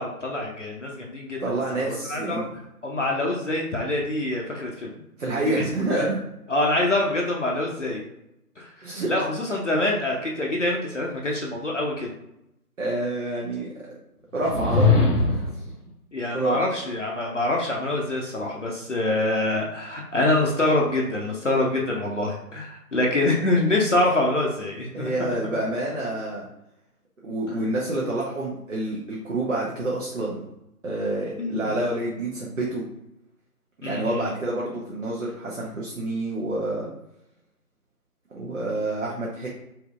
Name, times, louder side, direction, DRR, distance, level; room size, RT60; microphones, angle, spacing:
voice 1, 0.0-1.4 1.7-2.4 2.8-5.0 5.5-6.1 6.5-8.0 8.6-12.1 16.1-25.1 27.5-27.6 31.4-31.8 33.8-34.3, left 2 dB, 55° left, -1 dB, 0.6 m, -25 dB
voice 2, 1.4-2.5 5.2-6.2 8.8-9.1 12.8-13.7 14.3-15.6 16.3-16.6 24.9-26.5 27.2-30.5 30.8-32.8 33.8-36.9 38.3-39.5, right 2 dB, 55° right, -4 dB, 0.8 m, -28 dB
sound 1, 14.4-15.6, left 3 dB, 85° left, 1.0 m, -20 dB
3.4 x 2.8 x 2.3 m, 0.86 s
figure-of-eight pair, 160°, 46 cm